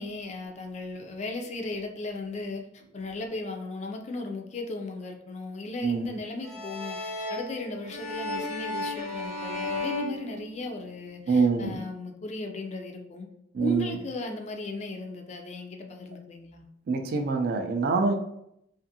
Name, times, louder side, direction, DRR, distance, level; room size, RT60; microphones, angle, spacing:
voice 1, 0.0-2.6 2.9-13.3 13.6-16.7, left 3 dB, 35° left, 3 dB, 0.3 m, -36 dB
sound 1, 6.4-11.0, left 2 dB, 35° right, 0.7 m, -34 dB
voice 2, 11.3-11.8 13.5-14.0 16.9-18.1, right 4 dB, 55° right, 4 dB, 0.3 m, -25 dB
2.5 x 2.4 x 2.7 m, 0.78 s
head